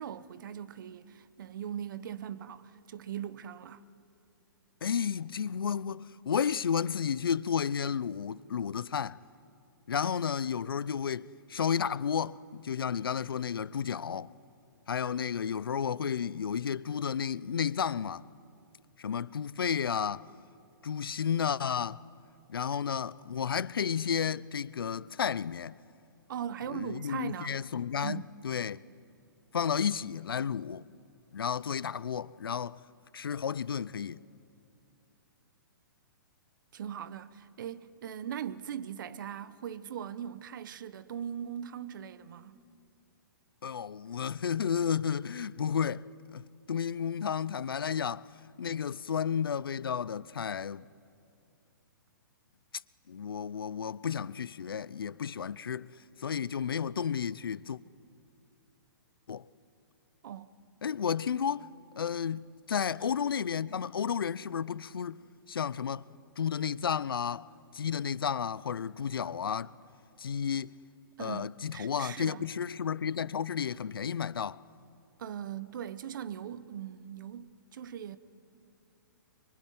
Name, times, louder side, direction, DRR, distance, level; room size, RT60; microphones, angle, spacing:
voice 1, 0.0-3.9 26.3-27.6 28.0-28.2 36.7-42.6 60.2-60.5 71.2-72.4 75.2-78.2, right 9 dB, 60° right, 1.2 m, -40 dB
voice 2, 4.8-9.2 9.9-14.3 14.9-18.2 19.0-20.3 20.8-22.0 22.5-25.8 26.7-28.8 29.5-30.9 31.3-32.8 33.1-34.2 43.6-46.0 46.3-46.4 46.7-48.3 48.6-50.9 53.1-57.8 59.3-59.5 60.8-61.7 62.0-65.2 65.5-66.1 66.4-67.5 67.7-69.7 70.2-70.8 71.2-74.6, left 7 dB, 90° left, 0.6 m, -32 dB
24.0 x 24.0 x 9.5 m
hypercardioid pair, 140°, 12 cm